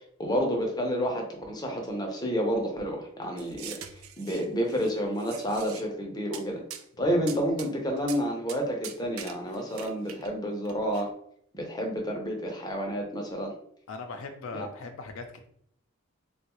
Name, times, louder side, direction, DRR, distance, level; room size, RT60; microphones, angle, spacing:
voice 1, 0.2-3.8 4.2-6.6 7.0-11.1 11.5-13.5 14.5-14.7, equal, 20° left, 1 dB, 0.6 m, -30 dB
sound 1, 3.4-4.9 5.2-5.8 6.3-6.4 6.7-6.8 7.3-7.7 8.0-8.2 8.5-8.6 8.8-10.3 10.6-11.0, right 9 dB, 80° right, 0.4 m, -43 dB
voice 2, 13.9-15.5, left 3 dB, 80° left, 5 dB, 0.4 m, -39 dB
3.7 x 2.3 x 2.9 m, 0.67 s
head